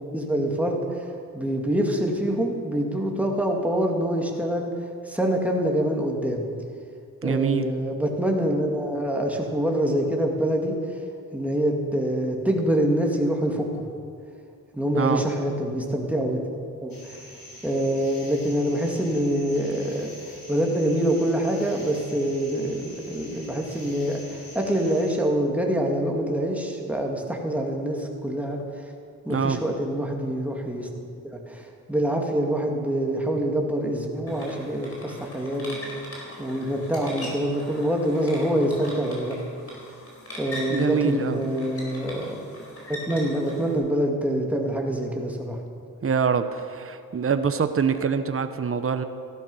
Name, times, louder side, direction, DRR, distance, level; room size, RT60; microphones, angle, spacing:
voice 1, 0.1-4.7 5.0-6.4 7.2-11.0 11.3-13.9 14.7-16.4 16.8-17.2 17.6-20.1 20.5-28.8 29.2-30.9 31.3-36.0 36.4-39.4 40.4-42.4 42.9-45.6, right 1 dB, 5° right, 0 dB, 2.2 m, -25 dB
voice 2, 7.2-7.7 14.9-15.2 29.3-29.6 40.7-41.4 46.0-49.0, right 6 dB, 40° right, 10 dB, 0.8 m, -24 dB
sound 1, 16.9-25.2, left 1 dB, 75° left, 4.2 m, -45 dB
sound 2, 34.3-43.8, left 1 dB, 40° left, 4.3 m, -40 dB
15.0 x 12.0 x 5.5 m, 2.3 s
cardioid pair, 80°, 35 cm